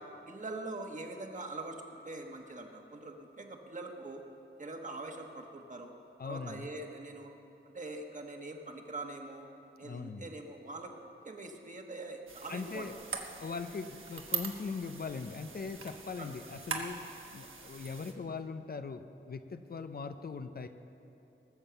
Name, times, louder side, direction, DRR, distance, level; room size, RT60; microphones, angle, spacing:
voice 1, 0.2-4.2 4.6-5.9 6.2-7.3 7.6-9.5 9.8-12.9 16.2-16.3, right 2 dB, 40° right, 3 dB, 1.3 m, -43 dB
voice 2, 6.2-6.7 9.8-10.2 12.5-13.0 13.4-17.0 17.3-20.7, left 4 dB, 50° left, 9 dB, 0.6 m, -40 dB
sound 1, 12.3-18.1, right 5 dB, 75° right, 1.3 m, -42 dB
18.5 x 7.4 x 6.9 m, 2.9 s
wide cardioid pair, 115°, 21 cm